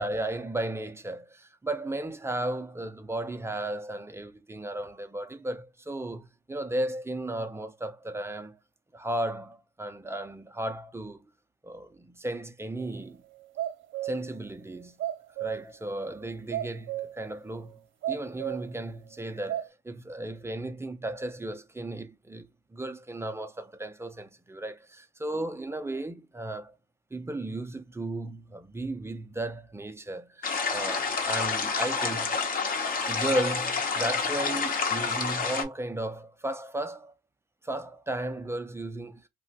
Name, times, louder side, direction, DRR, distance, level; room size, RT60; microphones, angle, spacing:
voice 1, 0.0-8.6 8.9-11.2 11.6-13.2 14.0-14.9 15.4-17.8 18.1-26.7 27.1-32.4 33.1-37.1 37.6-39.2, right 1 dB, 15° right, 0.4 m, -35 dB
sound 1, 12.8-12.9 13.3-14.2 14.7-15.7 16.1-16.2 16.5-17.2 17.6-17.8 18.0-18.7 19.2-19.7, right 12 dB, 75° right, 0.6 m, -33 dB
sound 2, 30.4-35.6, left 4 dB, 45° left, 0.8 m, -28 dB
2.4 x 2.1 x 3.9 m
cardioid pair, 90°, 20 cm